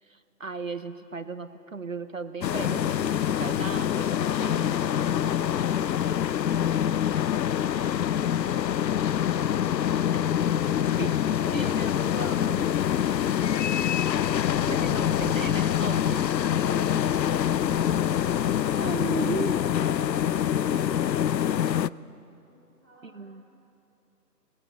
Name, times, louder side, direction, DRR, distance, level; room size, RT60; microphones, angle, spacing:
voice 1, 0.0-4.8 10.9-11.2 11.5-12.7 14.7-16.3 18.2-18.3 18.8-19.9 23.0-23.4, right 4 dB, 55° right, 11 dB, 0.8 m, -36 dB
sound 1, 2.4-21.9, left 10 dB, 85° left, 0.6 m, -25 dB
voice 2, 4.4-7.6 8.0-10.3 10.8-14.2 16.1-17.8 19.2-21.6 22.4-23.3, right 1 dB, 10° right, -12 dB, 1.6 m, -51 dB
20.0 x 19.5 x 7.7 m, 2.8 s
figure-of-eight pair, 180°, 49 cm